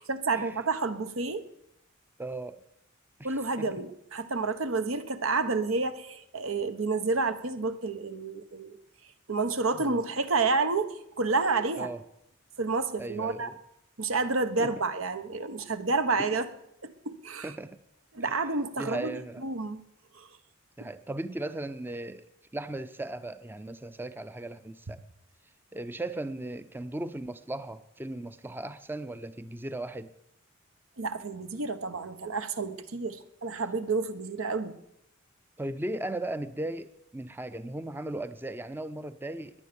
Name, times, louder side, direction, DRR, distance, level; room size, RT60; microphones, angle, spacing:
voice 1, 0.0-1.4 3.2-8.8 9.3-11.9 12.6-13.5 14.0-16.5 16.8-17.5 18.1-19.1 19.4-19.8 20.1-20.3 31.0-34.8, right 3 dB, 85° right, 1.2 m, -29 dB
voice 2, 2.2-2.6 3.2-3.8 9.7-10.0 11.8-12.0 13.0-13.6 14.6-14.7 16.1-16.4 17.4-17.8 18.2-18.5 18.8-19.4 20.8-22.3 22.5-25.0 25.7-30.1 35.6-39.5, right 1 dB, 10° right, 0.5 m, -37 dB
21.5 x 9.2 x 6.9 m
head